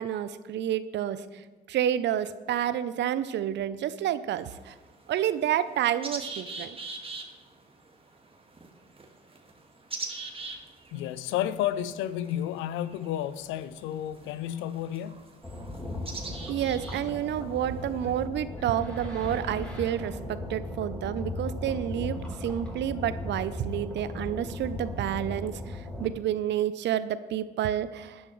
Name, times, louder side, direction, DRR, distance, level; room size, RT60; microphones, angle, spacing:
voice 1, 0.0-4.7 5.1-6.8 16.5-28.2, right 10 dB, 60° right, 0.7 m, -29 dB
sound 1, 4.3-18.2, right 3 dB, 25° right, 1.9 m, -44 dB
voice 2, 10.9-15.3, left 11 dB, 70° left, 0.6 m, -31 dB
sound 2, 15.4-26.1, left 1 dB, 5° left, 3.9 m, -37 dB
15.5 x 10.5 x 3.2 m
hypercardioid pair, 50°, 21 cm